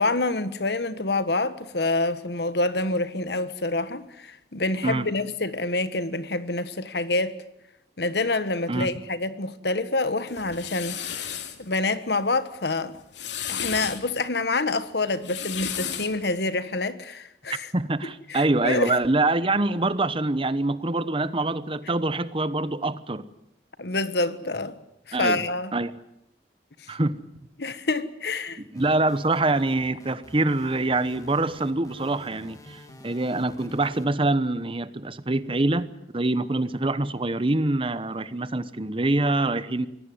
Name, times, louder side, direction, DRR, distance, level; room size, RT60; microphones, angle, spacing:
voice 1, 0.0-7.4 8.0-11.3 11.6-13.0 13.5-17.7 18.3-18.9 23.8-24.8 25.1-25.7 27.6-28.6, left 2 dB, 65° left, 1.4 m, -27 dB
sound 1, 10.3-11.6 12.9-14.0 15.1-16.2, left 8 dB, 85° left, 2.6 m, -33 dB
voice 2, 17.7-23.2 25.1-25.4 25.7-25.9 26.9-27.1 28.7-39.9, right 2 dB, 30° right, 1.0 m, -25 dB
sound 2, 28.7-34.1, left 1 dB, 20° left, 3.1 m, -48 dB
24.0 x 17.5 x 9.5 m
head